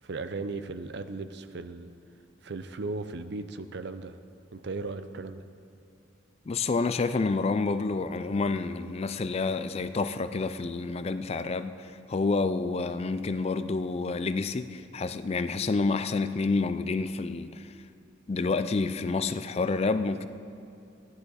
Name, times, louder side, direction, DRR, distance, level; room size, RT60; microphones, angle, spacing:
voice 1, 0.0-1.9 2.4-4.2 4.5-5.4, right 3 dB, 60° right, 10 dB, 0.6 m, -36 dB
voice 2, 6.5-17.7 18.3-20.3, left 3 dB, 30° left, 11 dB, 0.4 m, -29 dB
16.0 x 11.5 x 4.1 m, 2.6 s
head